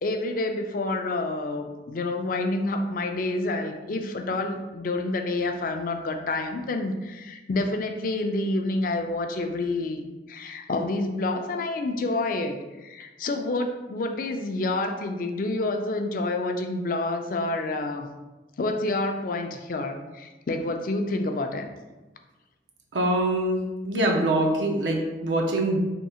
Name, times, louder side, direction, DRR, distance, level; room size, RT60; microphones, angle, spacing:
voice 1, 0.0-10.0 10.3-18.1 18.6-21.7, left 2 dB, 50° left, 5 dB, 0.4 m, -28 dB
voice 2, 22.9-23.6 23.8-25.8, right 1 dB, 85° right, 1 dB, 0.6 m, -24 dB
3.6 x 2.7 x 4.2 m, 1.1 s
head